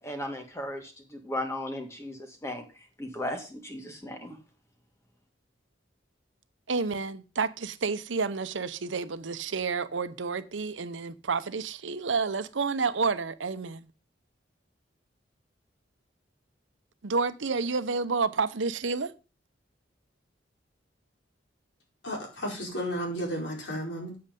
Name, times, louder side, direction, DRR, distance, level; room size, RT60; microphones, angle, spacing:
voice 1, 0.0-4.4, left 1 dB, 15° left, 2.0 m, -36 dB
voice 2, 6.7-13.9 17.0-19.1, right 4 dB, 90° right, 0.8 m, -30 dB
voice 3, 22.0-24.2, equal, 75° left, 4.6 m, -33 dB
8.6 x 7.8 x 5.3 m
head